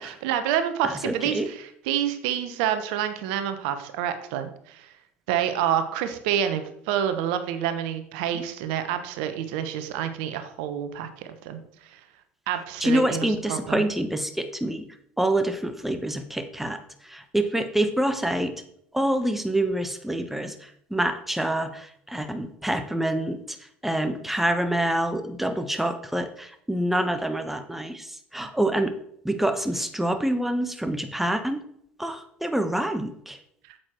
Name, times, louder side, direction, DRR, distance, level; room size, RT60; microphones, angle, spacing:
voice 1, 0.0-4.9 5.3-12.0 12.5-13.8 33.7-33.8, right 9 dB, 65° right, 9 dB, 1.0 m, -28 dB
voice 2, 0.8-1.5 8.3-8.4 12.8-14.9 15.2-18.5 18.9-23.6 23.8-28.9 29.2-31.6 32.0-33.4, right 1 dB, 5° right, 8 dB, 1.2 m, -26 dB
8.9 x 7.9 x 4.5 m, 0.70 s
hypercardioid pair, 70°, 6 cm